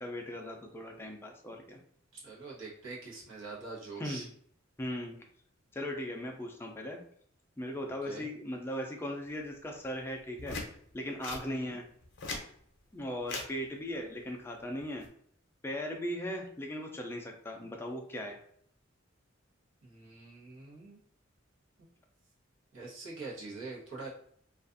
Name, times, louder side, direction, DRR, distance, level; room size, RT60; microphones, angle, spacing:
voice 1, 0.0-1.8 4.0-4.3 4.8-5.2 5.7-7.0 7.6-10.6 10.9-11.9 12.9-15.1 15.6-18.4, equal, 10° left, 2 dB, 0.4 m, -38 dB
voice 2, 2.2-4.3 8.1-8.3 11.5-11.8 19.8-21.0 22.7-24.1, right 3 dB, 75° right, -6 dB, 1.0 m, -44 dB
sound 1, 10.4-10.7 11.2-11.4 12.0-12.5 13.2-13.5 14.8-15.1, left 3 dB, 60° left, 0.6 m, -38 dB
2.4 x 2.3 x 2.5 m, 0.63 s
head